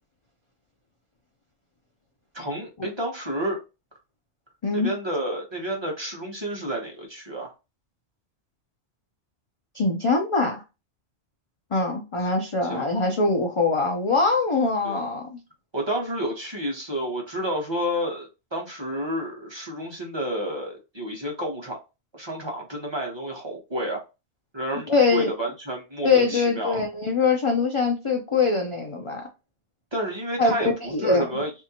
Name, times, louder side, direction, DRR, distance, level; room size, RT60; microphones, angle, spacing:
voice 1, 2.3-3.6 4.7-7.5 12.2-12.3 12.6-12.9 14.8-15.0 15.7-21.8 22.1-24.0 24.5-26.8 29.9-31.5, equal, 25° right, 1.0 m, -30 dB
voice 2, 9.7-10.6 11.7-15.4 24.9-25.3 26.0-29.2 30.4-31.2, left 4 dB, 45° left, 0.4 m, -23 dB
3.5 x 2.7 x 2.8 m
omnidirectional pair, 1.2 m